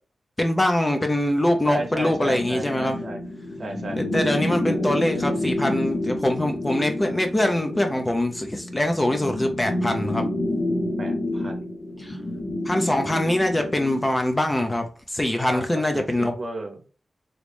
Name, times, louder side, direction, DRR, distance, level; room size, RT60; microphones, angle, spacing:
voice 1, 0.4-3.0 3.9-10.2 12.0-12.2 12.6-16.3, left 1 dB, 15° left, 5 dB, 0.4 m, -23 dB
voice 2, 1.7-3.2 3.6-4.0 11.0-11.7 15.5-15.7 15.9-16.8, right 2 dB, 45° right, 3 dB, 0.7 m, -34 dB
sound 1, 1.8-14.1, left 1 dB, 70° left, 1.0 m, -29 dB
3.1 x 2.5 x 3.2 m, 0.36 s
wide cardioid pair, 150°, 0 cm